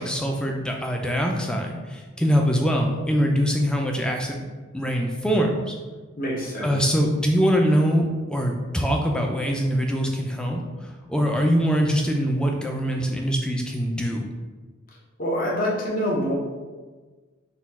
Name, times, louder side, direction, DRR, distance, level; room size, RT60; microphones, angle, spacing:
voice 1, 0.0-4.4 4.7-5.8 6.6-14.2, equal, 5° left, 1 dB, 0.4 m, -23 dB
voice 2, 6.2-6.8 15.2-16.3, equal, 40° left, -4 dB, 0.9 m, -25 dB
4.1 x 2.3 x 4.1 m, 1.3 s
head